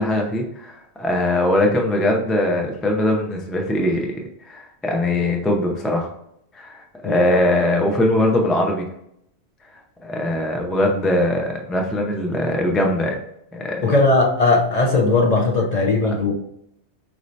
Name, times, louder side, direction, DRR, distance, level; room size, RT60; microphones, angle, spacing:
voice 1, 0.0-6.1 6.5-8.9 10.0-13.2 13.5-13.9, left 1 dB, ahead, 1 dB, 0.3 m, -21 dB
voice 2, 13.8-16.3, left 3 dB, 45° left, -1 dB, 0.6 m, -18 dB
4.7 x 2.7 x 3.1 m, 0.76 s
omnidirectional pair, 1.1 m